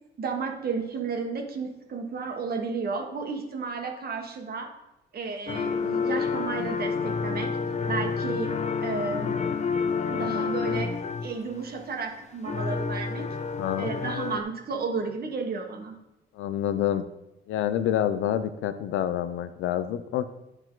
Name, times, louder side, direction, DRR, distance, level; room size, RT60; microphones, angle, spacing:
voice 1, 0.2-4.7 5.1-7.5 7.9-8.5 8.8-9.4 10.1-10.9 11.2-13.3 13.8-15.9, right 4 dB, 50° right, 3 dB, 1.4 m, -32 dB
sound 1, 5.5-11.6 12.5-14.4, left 5 dB, 35° left, 0.6 m, -29 dB
voice 2, 13.6-14.0 16.3-17.0 17.5-20.3, left 10 dB, 85° left, 11 dB, 0.6 m, -27 dB
9.8 x 4.9 x 3.8 m, 0.89 s
cardioid pair, 90°, 20 cm